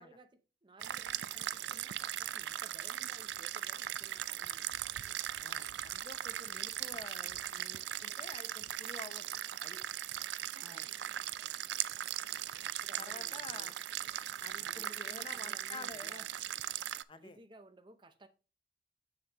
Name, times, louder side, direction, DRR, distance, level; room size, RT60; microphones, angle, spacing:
voice 1, 0.0-4.8 10.5-11.0 12.6-13.7 14.6-16.3 17.2-18.3, right 2 dB, 25° right, 0.6 m, -58 dB
sound 1, 0.8-17.0, right 12 dB, 80° right, 0.4 m, -39 dB
voice 2, 5.4-9.3 9.6-9.8 10.7-10.9 12.5-12.7 13.0-13.7 14.4-16.3 17.1-17.4, left 3 dB, 30° left, 0.7 m, -50 dB
7.1 x 6.7 x 2.9 m
head